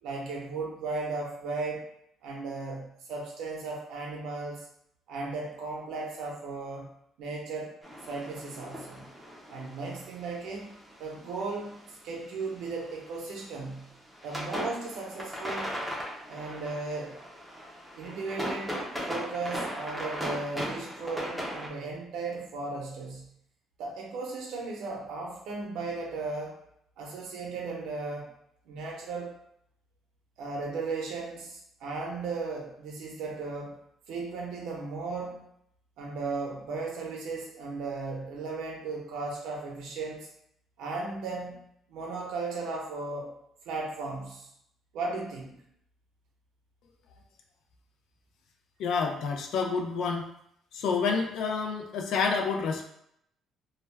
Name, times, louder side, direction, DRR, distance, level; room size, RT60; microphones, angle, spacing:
voice 1, 0.0-1.8 2.2-4.7 5.1-6.9 7.2-7.7 8.0-9.1 9.5-13.9 14.2-15.7 16.3-17.2 18.0-23.3 23.8-26.6 27.0-28.3 28.7-29.3 30.4-33.8 34.1-35.5 36.0-40.3 40.8-43.3 43.6-44.5 44.9-45.5, right 3 dB, 80° right, -1 dB, 0.7 m, -36 dB
sound 1, 7.8-11.9 12.4-13.5 13.8-21.7, equal, ahead, 0.5 m, -38 dB
voice 2, 48.8-50.3 50.7-52.9, left 5 dB, 70° left, 3 dB, 0.4 m, -28 dB
2.3 x 2.1 x 3.2 m, 0.73 s
cardioid pair, 160°, 0 cm